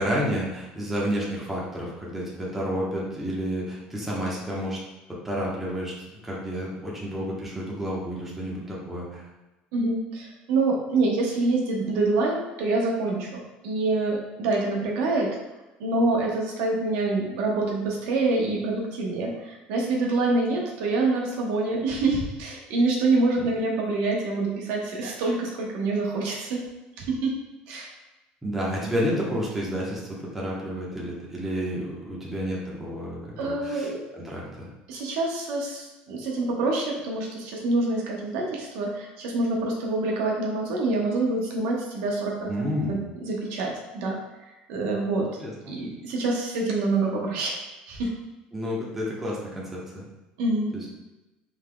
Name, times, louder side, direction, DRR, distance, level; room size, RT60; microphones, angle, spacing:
voice 1, 0.0-4.8 5.2-5.9 6.2-9.2 23.4-23.5 28.4-34.7 42.5-43.0 45.4-45.5 48.5-50.0 50.7-50.9, equal, 5° right, -5 dB, 1.1 m, -30 dB
voice 2, 9.7-13.3 13.6-15.3 15.8-26.6 27.0-27.3 27.7-27.9 33.4-34.0 34.9-44.2 44.7-45.2 45.7-47.6 47.9-48.1 50.4-50.8, right 2 dB, 80° right, -2 dB, 1.0 m, -26 dB
5.6 x 3.5 x 2.3 m, 1.0 s
cardioid pair, 150°, 3 cm